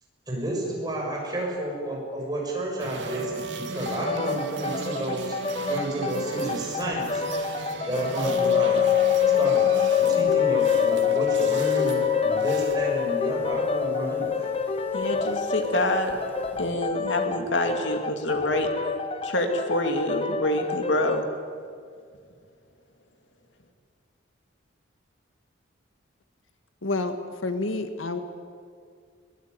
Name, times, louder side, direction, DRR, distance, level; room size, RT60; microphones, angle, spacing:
voice 1, 0.3-5.4 5.7-7.2 7.8-8.8 9.4-9.7 9.9-14.5, right 1 dB, 20° right, -2 dB, 6.8 m, -31 dB
sound 1, 2.8-12.8, right 4 dB, 60° right, 2.4 m, -36 dB
sound 2, 3.9-21.3, left 2 dB, 30° left, 0.8 m, -31 dB
sound 3, 8.2-16.7, left 11 dB, 10° left, 3.1 m, -24 dB
voice 2, 14.9-16.2 16.5-18.7 19.2-21.2, left 1 dB, 65° left, 4 dB, 2.5 m, -26 dB
voice 3, 26.8-27.2 27.4-28.2, left 2 dB, 85° left, 7 dB, 1.8 m, -28 dB
22.5 x 21.0 x 9.6 m, 2.1 s
head